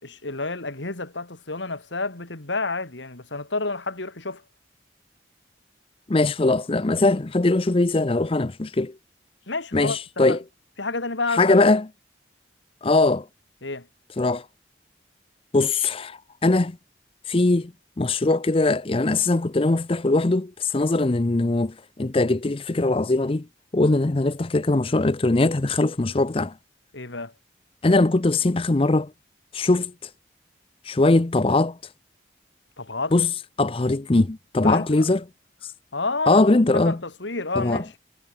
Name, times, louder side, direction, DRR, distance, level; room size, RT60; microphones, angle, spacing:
voice 1, 0.0-4.4 9.5-10.0 10.3-10.4 10.8-11.7 13.6-13.8 26.9-27.3 32.8-33.1 34.6-35.0 35.9-37.9, left 3 dB, 85° left, 2.8 m, -30 dB
voice 2, 6.1-8.9 9.7-10.4 11.3-11.9 12.8-13.3 14.2-14.5 15.5-16.8 17.3-17.7 18.0-23.5 23.7-26.5 27.8-29.1 29.5-30.1 30.8-31.8 33.1-33.3 33.6-35.2 35.6-35.7 36.3-37.0 37.6-37.8, left 2 dB, 30° left, 0.6 m, -21 dB
head